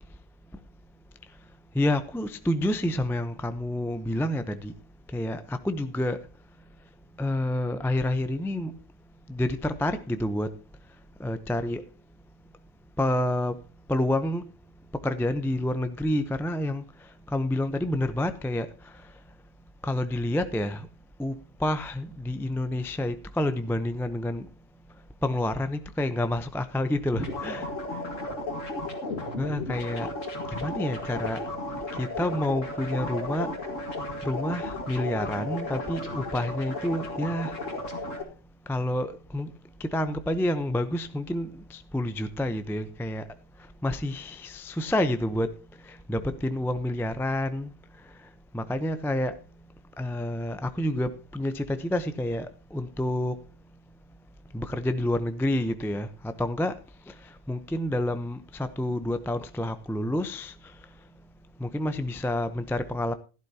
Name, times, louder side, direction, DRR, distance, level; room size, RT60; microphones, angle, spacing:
voice 1, 1.7-4.7 5.1-6.2 7.2-8.7 9.3-10.5 11.2-11.8 13.0-13.6 13.9-14.5 15.0-16.8 17.3-18.7 19.8-20.9 21.2-24.5 25.2-27.7 29.4-30.1 30.5-31.4 32.0-33.5 34.2-37.6 38.7-39.5 39.8-43.2 43.8-45.5 45.9-47.7 48.5-49.3 50.0-53.3 54.5-56.7 57.1-57.2 57.5-60.5 61.6-63.1, left 1 dB, 5° left, 0.5 m, -28 dB
sound 1, 27.1-38.2, left 2 dB, 85° left, 2.4 m, -34 dB
16.0 x 11.5 x 2.8 m
omnidirectional pair, 1.3 m